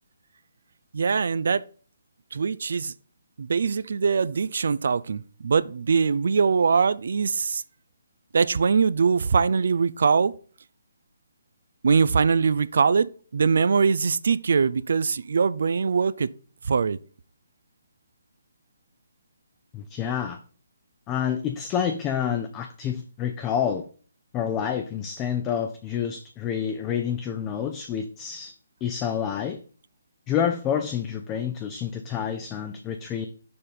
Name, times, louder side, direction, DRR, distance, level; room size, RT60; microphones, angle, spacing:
voice 1, 0.9-1.6 2.3-2.9 3.4-7.6 8.3-10.3 11.8-13.1 13.3-16.3 16.6-17.0, right 5 dB, 65° right, 0.4 m, -22 dB
voice 2, 19.7-20.4 21.1-23.9 24.3-28.5 28.8-29.6 30.3-33.3, left 8 dB, 20° left, 0.6 m, -28 dB
6.8 x 4.1 x 5.0 m
figure-of-eight pair, 145°, 0 cm